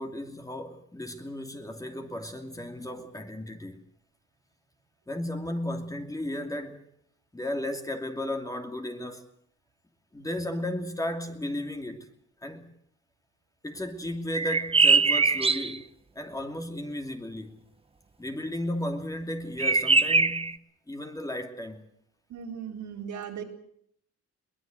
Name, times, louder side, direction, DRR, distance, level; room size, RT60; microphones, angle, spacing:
voice 1, 0.0-3.8 5.1-6.8 7.3-9.3 10.1-12.1 12.4-12.7 13.6-15.9 16.1-17.6 18.2-21.8, left 1 dB, 10° left, 2.7 m, -34 dB
sound 1, 14.3-15.8 19.6-20.5, right 4 dB, 20° right, 0.9 m, -22 dB
voice 2, 22.3-23.4, right 7 dB, 70° right, 4.5 m, -37 dB
22.5 x 19.5 x 7.8 m
cardioid pair, 90°, 30 cm